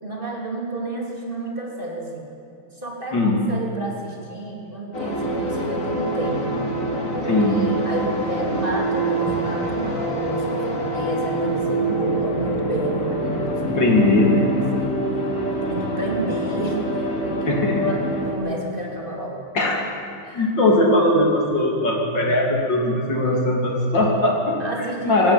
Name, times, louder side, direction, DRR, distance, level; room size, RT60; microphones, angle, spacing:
voice 1, 0.0-2.3 2.7-6.6 7.1-15.3 15.7-19.4 20.2-20.4 24.6-25.3, right 1 dB, 25° right, -2 dB, 3.4 m, -31 dB
voice 2, 3.1-3.4 7.3-7.7 13.7-14.6 17.5-17.9 19.6-19.8 20.3-25.3, left 1 dB, 55° left, 0 dB, 3.6 m, -20 dB
sound 1, 4.9-18.3, right 1 dB, 35° left, 3.6 m, -25 dB
21.0 x 17.0 x 9.1 m, 2.7 s
omnidirectional pair, 2.3 m